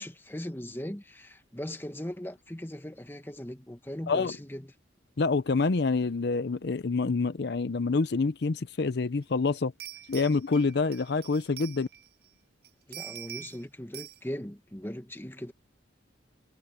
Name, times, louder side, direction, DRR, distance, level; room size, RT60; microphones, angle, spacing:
voice 1, 0.0-4.7 12.9-15.5, left 1 dB, 10° left, 1.3 m, -39 dB
voice 2, 5.2-9.7 10.1-11.9, left 4 dB, 60° left, 0.6 m, -27 dB
sound 1, 9.2-9.3 9.8-12.3 12.6-13.6 13.9-14.2, right 12 dB, 55° right, 1.1 m, -44 dB
head